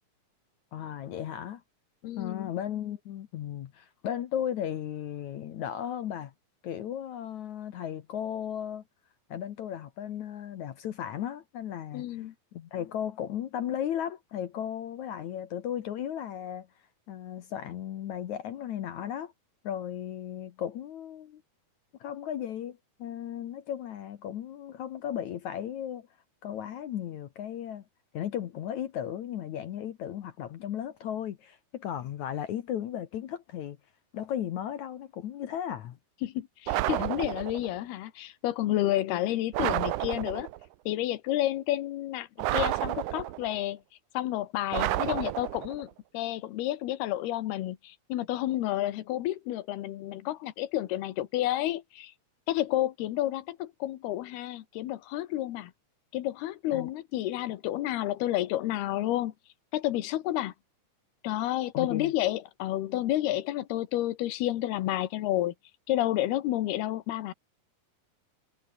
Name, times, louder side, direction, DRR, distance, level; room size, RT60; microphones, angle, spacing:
voice 1, 0.7-1.6 2.2-6.3 6.6-8.8 9.3-12.1 12.5-16.7 17.1-19.3 19.6-21.4 22.0-26.1 26.4-27.8 28.1-33.8 34.1-36.0 56.7-56.9 61.7-62.1, left 10 dB, 65° left, 2.1 m, -35 dB
voice 2, 2.0-2.5 11.9-12.3 36.2-40.5 40.9-43.8 44.1-52.1 52.5-55.7 56.1-59.3 59.7-60.5 61.2-65.5 65.9-67.3, left 14 dB, 90° left, 3.3 m, -30 dB
sound 1, 36.7-37.7 39.5-40.6 42.4-43.6 44.7-45.8, right 16 dB, 75° right, 1.9 m, -30 dB
omnidirectional pair, 4.4 m